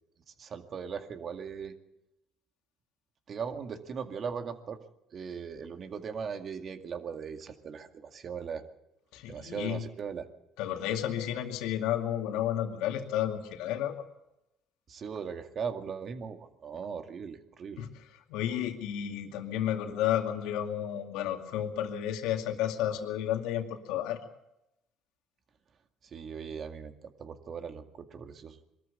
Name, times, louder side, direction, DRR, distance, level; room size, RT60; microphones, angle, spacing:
voice 1, 0.4-1.7 3.3-4.8 5.1-8.7 9.3-10.3 14.9-17.8 26.0-28.6, right 6 dB, 45° right, 7 dB, 2.1 m, -39 dB
voice 2, 9.1-9.8 10.6-14.0 17.8-17.9 18.3-24.2, left 11 dB, 80° left, 5 dB, 2.3 m, -32 dB
22.5 x 13.5 x 8.5 m, 0.89 s
supercardioid pair, 80°, 0 cm